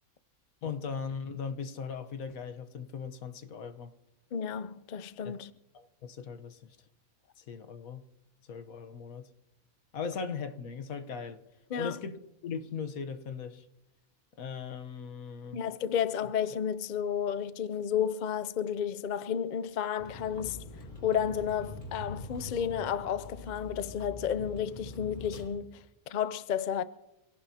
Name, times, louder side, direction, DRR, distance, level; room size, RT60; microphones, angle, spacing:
voice 1, 0.6-3.9 5.2-5.4 5.7-6.8 7.4-8.0 8.5-9.3 9.9-11.4 11.8-13.7 14.4-15.6, left 6 dB, 75° left, 1.5 m, -39 dB
voice 2, 4.3-5.5 11.7-12.0 15.5-20.6 21.0-26.8, left 8 dB, 55° left, 0.5 m, -32 dB
Vehicle, 20.0-25.5, left 2 dB, 35° left, 3.2 m, -44 dB
26.5 x 17.5 x 2.8 m
omnidirectional pair, 1.5 m